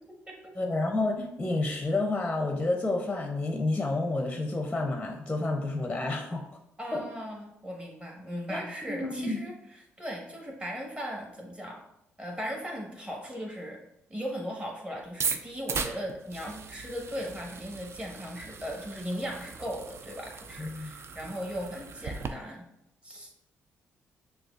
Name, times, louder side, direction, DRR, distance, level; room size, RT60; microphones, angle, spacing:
voice 1, 0.6-6.4 6.9-7.0 8.5-9.4 20.6-20.9, left 2 dB, 15° left, 2 dB, 0.6 m, -30 dB
voice 2, 6.8-11.8 12.2-13.8 14.1-22.7 23.0-23.4, equal, 20° right, -1 dB, 1.3 m, -38 dB
sound 1, 15.1-22.3, right 5 dB, 50° right, 0.4 m, -38 dB
6.1 x 2.4 x 2.4 m, 0.83 s
supercardioid pair, 60°, 6 cm